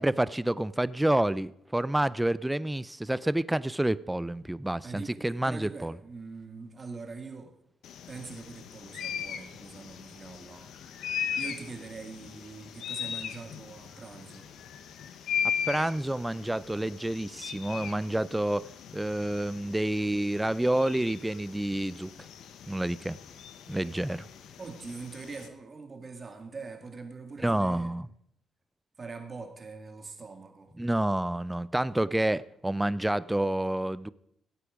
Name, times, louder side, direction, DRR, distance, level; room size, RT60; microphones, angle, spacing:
voice 1, 0.0-6.0 15.7-22.1 22.7-23.2 23.7-24.3 27.4-28.1 30.8-34.1, right 1 dB, 10° right, 0.5 m, -29 dB
voice 2, 4.8-7.5 8.1-10.7 11.4-14.5 24.6-27.9 29.0-30.7, right 4 dB, 35° right, 2.1 m, -43 dB
sound 1, 7.8-25.5, left 8 dB, 75° left, 1.1 m, -39 dB
17.5 x 8.3 x 5.1 m
cardioid pair, 90°, 0 cm